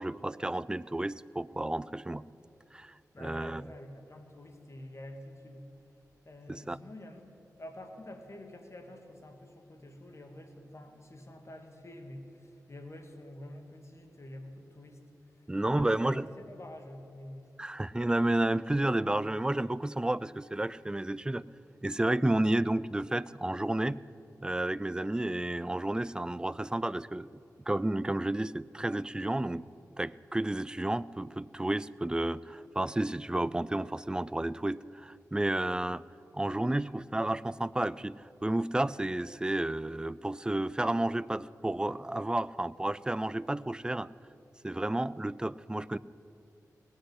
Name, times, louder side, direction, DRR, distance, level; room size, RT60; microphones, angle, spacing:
voice 1, 0.0-2.2 2.7-2.9 3.2-3.6 6.5-6.8 15.5-16.3 17.6-21.4 21.8-24.0 24.4-27.3 27.7-29.6 30.0-36.0 36.3-44.1 44.6-46.0, right 1 dB, 10° right, 19 dB, 0.4 m, -31 dB
voice 2, 3.1-5.7 6.2-7.3 7.6-15.0 15.3-17.8, left 1 dB, 45° left, 5 dB, 2.0 m, -48 dB
18.0 x 6.4 x 9.6 m, 2.8 s
cardioid pair, 45°, 7 cm